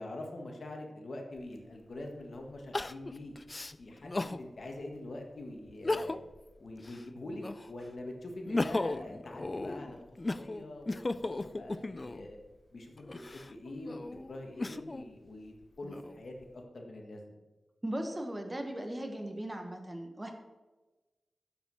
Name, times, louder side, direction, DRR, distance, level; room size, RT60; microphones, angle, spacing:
voice 1, 0.0-3.4 3.8-6.2 6.6-12.4 12.7-14.0 14.3-17.3, left 1 dB, 65° left, 2 dB, 1.7 m, -44 dB
Crying sobbing, 1.4-1.5 2.7-4.4 4.9-5.0 5.7-6.4 6.8-7.8 8.3-12.3 13.0-15.1 15.6-16.4, left 2 dB, 30° left, 0.3 m, -36 dB
voice 2, 17.8-20.3, right 1 dB, 20° right, 4 dB, 1.3 m, -38 dB
7.7 x 7.0 x 6.3 m, 1.2 s
wide cardioid pair, 80°, 0 cm